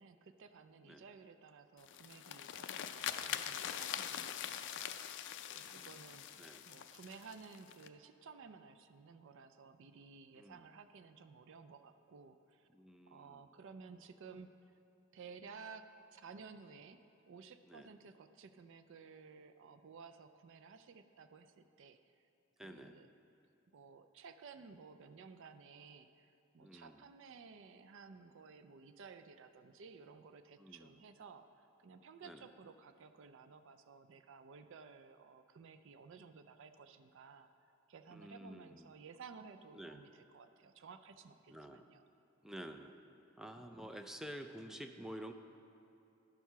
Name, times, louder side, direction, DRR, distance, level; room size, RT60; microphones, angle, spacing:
voice 1, 0.0-5.2 5.5-12.7 13.1-14.5 15.1-17.0 17.3-22.0 22.6-23.1 23.7-37.5 37.9-42.0, right 5 dB, 65° right, 9 dB, 0.4 m, -55 dB
sound 1, 1.8-7.9, left 10 dB, 60° left, 0.4 m, -43 dB
voice 2, 5.6-6.7 10.4-10.7 12.7-13.5 17.7-17.9 22.6-23.0 26.6-27.1 30.6-31.0 32.2-32.5 38.1-39.0 39.7-40.0 41.5-41.9 42.4-43.0 43.4-45.3, equal, ahead, 6 dB, 0.4 m, -50 dB
11.5 x 4.6 x 5.6 m, 2.8 s
head